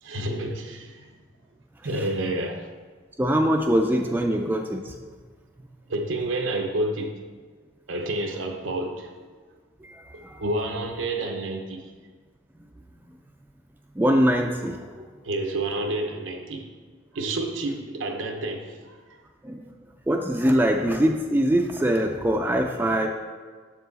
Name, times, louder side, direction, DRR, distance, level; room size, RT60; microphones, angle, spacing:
voice 1, 0.0-1.1 1.8-2.7 5.9-7.2 7.9-9.2 10.4-11.9 15.2-16.7 17.1-19.2, right 2 dB, 90° right, 4 dB, 0.8 m, -29 dB
voice 2, 3.2-5.0 9.8-10.4 14.0-15.1 19.4-19.7 20.1-23.1, equal, 10° right, 3 dB, 0.3 m, -23 dB
7.4 x 4.6 x 4.0 m, 1.5 s
head